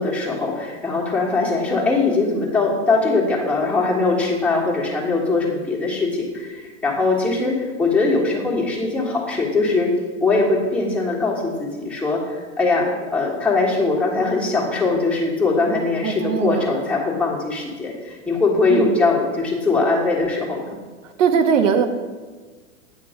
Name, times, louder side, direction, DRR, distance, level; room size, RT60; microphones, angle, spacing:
voice 1, 0.0-9.9 10.2-20.7, left 3 dB, 5° left, -5 dB, 1.4 m, -21 dB
voice 2, 16.0-16.7 18.7-18.9 21.2-21.9, right 6 dB, 75° right, 8 dB, 0.7 m, -19 dB
9.0 x 3.0 x 5.1 m, 1.4 s
hypercardioid pair, 110°, 38 cm